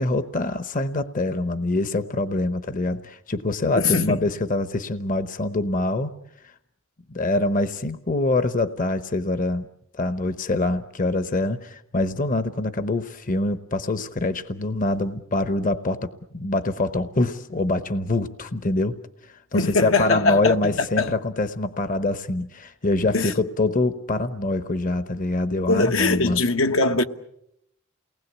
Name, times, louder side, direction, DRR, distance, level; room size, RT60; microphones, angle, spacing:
voice 1, 0.0-6.1 7.1-9.7 9.9-26.4, left 2 dB, 40° left, 1.0 m, -25 dB
voice 2, 3.8-4.2 19.5-20.5 21.0-21.1 23.1-23.3 25.7-27.0, left 3 dB, 75° left, 1.3 m, -21 dB
29.0 x 19.5 x 8.3 m
head